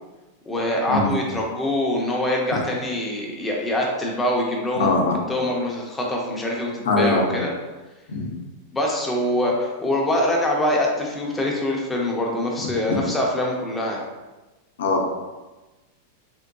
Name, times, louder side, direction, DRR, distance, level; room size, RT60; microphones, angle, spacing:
voice 1, 0.5-4.9 5.3-7.5 8.7-14.1, left 1 dB, 10° left, -2 dB, 0.5 m, -24 dB
voice 2, 4.8-5.2 6.8-7.4 8.1-8.3 12.9-13.0 14.8-15.0, left 3 dB, 90° left, 1 dB, 0.6 m, -21 dB
3.6 x 2.5 x 2.2 m, 1.1 s
supercardioid pair, 160°, 0 cm